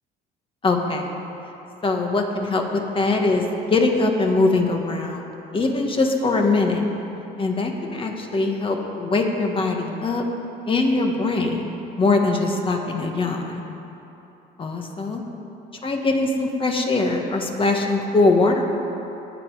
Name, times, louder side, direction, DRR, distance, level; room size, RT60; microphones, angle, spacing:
voice 1, 0.6-1.1 1.8-3.4 3.7-5.2 5.5-6.8 7.4-10.3 10.7-11.6 12.0-13.6 14.6-15.2 15.8-18.6, left 3 dB, 30° left, 2 dB, 1.6 m, -22 dB
19.5 x 7.8 x 4.9 m, 3.0 s
cardioid pair, 110°, 17 cm